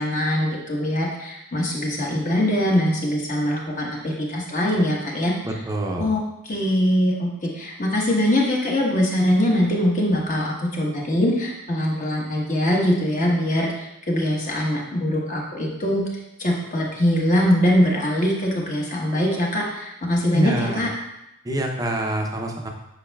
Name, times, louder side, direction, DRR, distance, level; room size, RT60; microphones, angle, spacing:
voice 1, 0.0-5.3 6.0-16.0 16.4-20.9, equal, 35° left, -3 dB, 1.3 m, -22 dB
voice 2, 5.4-6.0 20.3-20.8 21.4-22.7, right 1 dB, 15° right, 1 dB, 0.7 m, -25 dB
8.6 x 5.5 x 2.3 m, 0.88 s
head